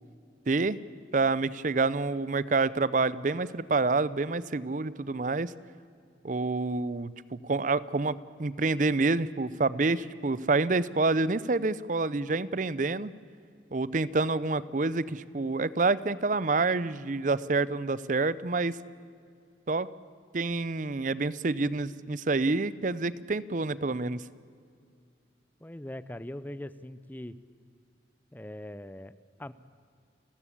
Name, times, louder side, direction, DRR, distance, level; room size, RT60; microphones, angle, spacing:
voice 1, 0.5-0.8 1.1-5.5 6.2-13.1 13.7-18.8 19.7-19.9 20.3-24.2, right 3 dB, 45° right, 18 dB, 0.6 m, -28 dB
voice 2, 25.6-27.4 28.3-29.5, left 1 dB, 10° left, 15 dB, 0.5 m, -41 dB
30.0 x 14.5 x 8.5 m, 2.3 s
head